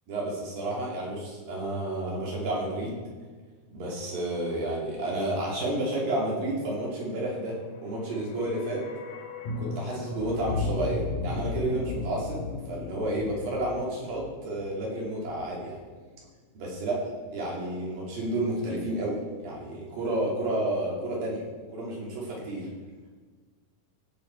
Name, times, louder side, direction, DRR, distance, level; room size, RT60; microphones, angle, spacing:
voice 1, 0.1-3.0 3.7-8.8 9.6-15.8 16.5-21.5 21.7-22.7, right 1 dB, 70° right, -4 dB, 4.5 m, -31 dB
sound 1, 7.8-15.9 16.1-16.2, left 3 dB, 65° left, 2.4 m, -36 dB
16.5 x 7.4 x 4.6 m, 1.4 s
omnidirectional pair, 4.2 m